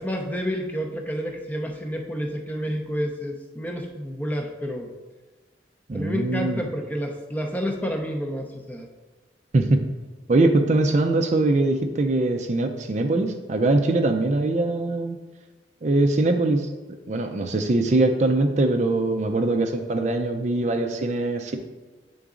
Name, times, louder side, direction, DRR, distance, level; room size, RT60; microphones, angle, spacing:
voice 1, 0.0-4.9 5.9-8.9, equal, 10° left, 2 dB, 0.6 m, -29 dB
voice 2, 5.9-6.6 9.5-9.8 10.3-15.2 15.8-16.7 17.1-21.6, right 2 dB, 40° right, 5 dB, 0.4 m, -22 dB
8.2 x 3.9 x 3.7 m, 1.3 s
head